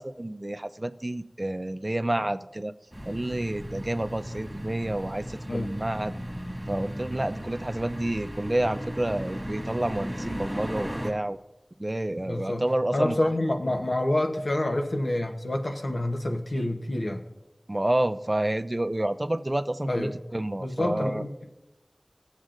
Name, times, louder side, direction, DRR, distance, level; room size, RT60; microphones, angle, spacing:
voice 1, 0.0-2.7 3.1-6.1 6.7-11.4 11.8-13.2 17.7-21.2, right 1 dB, 40° right, 12 dB, 0.4 m, -29 dB
sound 1, 2.9-11.1, equal, 5° right, 1.8 m, -36 dB
voice 2, 12.2-12.6 12.9-17.2 19.8-20.1 20.6-21.3, left 1 dB, 90° left, 4 dB, 0.9 m, -27 dB
18.0 x 7.3 x 2.5 m, 0.98 s
wide cardioid pair, 40°, 0 cm